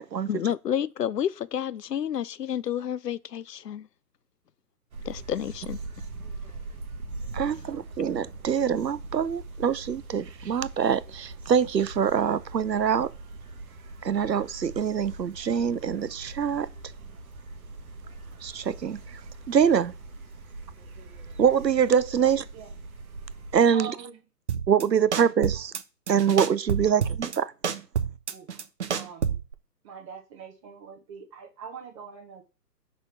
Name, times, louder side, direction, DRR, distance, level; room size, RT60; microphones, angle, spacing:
voice 1, 0.3-3.9 5.0-5.8, left 9 dB, 75° left, 0.6 m, -30 dB
sound 1, 4.9-23.6, right 3 dB, 60° right, 1.1 m, -42 dB
voice 2, 7.3-13.1 14.0-16.7 18.4-19.0 19.5-19.9 21.4-22.4 23.5-23.9 24.7-25.7 26.1-27.5, right 7 dB, 80° right, 0.7 m, -24 dB
voice 3, 22.2-22.7 23.7-24.2 28.3-28.6 28.9-29.4 29.8-32.4, right 6 dB, 20° right, 1.2 m, -43 dB
sound 2, 24.5-24.8 25.1-25.8 26.1-27.4 27.6-29.5, right 7 dB, 45° right, 0.8 m, -28 dB
6.2 x 3.6 x 4.5 m
figure-of-eight pair, 135°, 49 cm